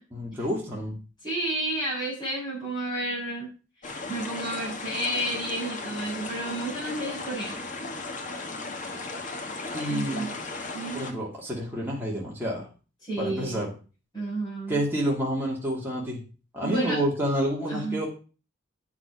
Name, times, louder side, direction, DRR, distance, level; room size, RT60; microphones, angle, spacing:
voice 1, 0.1-1.0 9.7-10.3 10.9-12.7 13.2-13.7 14.7-16.2 16.5-18.1, right 1 dB, 10° right, -5 dB, 2.5 m, -29 dB
voice 2, 1.2-3.5 4.1-7.6 9.9-10.3 10.7-11.0 13.0-13.6 14.1-14.8 16.6-17.0 17.7-18.0, right 1 dB, 20° left, -6 dB, 6.5 m, -31 dB
sound 1, 3.8-11.1, left 3 dB, 40° left, 1.5 m, -36 dB
8.9 x 6.1 x 6.1 m, 0.35 s
head